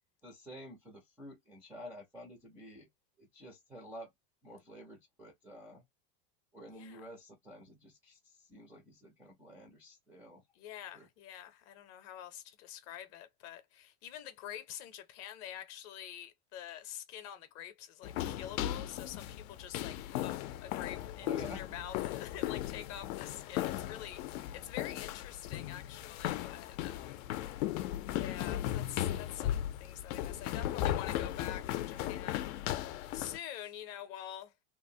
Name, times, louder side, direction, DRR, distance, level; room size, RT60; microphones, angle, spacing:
voice 1, 0.2-2.9 3.2-4.1 4.4-5.8 6.5-8.2 8.5-10.4 10.9-11.1 21.2-21.6, equal, 5° right, 0.3 m, -50 dB
voice 2, 6.7-7.1 10.5-27.2 28.0-34.5, left 11 dB, 40° left, 0.6 m, -47 dB
sound 1, 18.0-33.4, left 13 dB, 80° left, 0.5 m, -37 dB
2.8 x 2.0 x 2.6 m
supercardioid pair, 160°, 41 cm